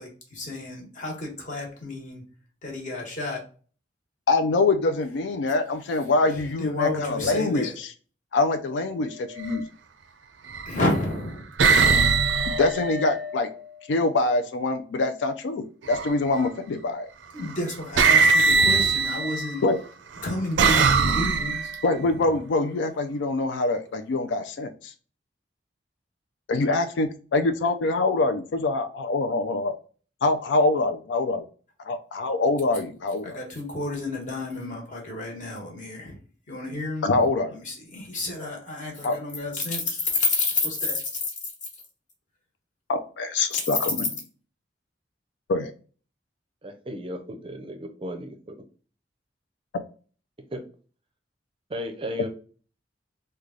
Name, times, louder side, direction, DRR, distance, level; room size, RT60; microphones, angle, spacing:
voice 1, 0.0-2.2 2.6-3.4 6.3-7.7 10.6-11.5 17.3-19.6 20.2-21.7 33.2-36.2 36.5-41.3, left 2 dB, 45° left, -1 dB, 1.2 m, -30 dB
voice 2, 4.3-7.9 8.3-9.7 12.6-13.5 13.9-17.1 19.6-19.8 21.8-24.9 26.5-29.7 30.2-31.4 31.8-33.4 37.0-37.5 39.0-39.1 42.9-44.2 45.5-45.7, left 3 dB, 85° left, 8 dB, 0.4 m, -24 dB
sound 1, 9.3-9.6 10.5-11.0 11.6-13.6 15.8-16.4 17.4-17.6 18.0-19.6 20.2-21.9, right 4 dB, 90° right, 0.4 m, -21 dB
voice 3, 46.6-48.3 50.5-50.6 51.7-52.3, equal, 30° right, 6 dB, 0.5 m, -34 dB
3.2 x 2.2 x 3.6 m, 0.39 s
head